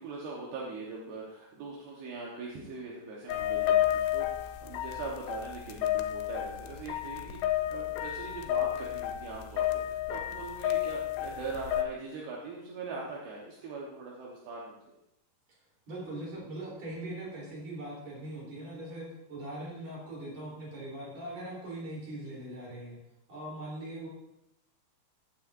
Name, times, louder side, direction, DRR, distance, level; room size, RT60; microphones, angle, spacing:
voice 1, 0.0-14.9, right 3 dB, 75° right, -3 dB, 3.2 m, -41 dB
sound 1, 3.3-11.8, left 12 dB, 90° left, 2.9 m, -31 dB
voice 2, 15.9-23.0 23.3-24.1, right 1 dB, 40° right, -4 dB, 4.4 m, -41 dB
14.5 x 8.9 x 2.6 m, 0.86 s
omnidirectional pair, 4.9 m